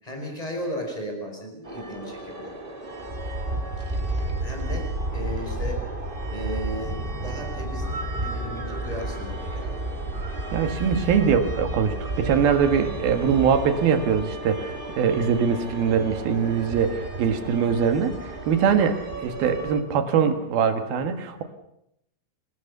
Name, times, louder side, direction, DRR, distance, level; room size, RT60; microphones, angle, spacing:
voice 1, 0.0-2.5 4.4-5.8 6.3-7.9 8.1-10.0, equal, 5° left, 2 dB, 5.1 m, -35 dB
sound 1, 1.6-19.8, right 2 dB, 40° right, 0.7 m, -32 dB
voice 2, 10.5-19.0 19.2-21.4, right 7 dB, 60° right, 7 dB, 3.1 m, -22 dB
26.0 x 18.5 x 6.8 m, 0.79 s
omnidirectional pair, 5.7 m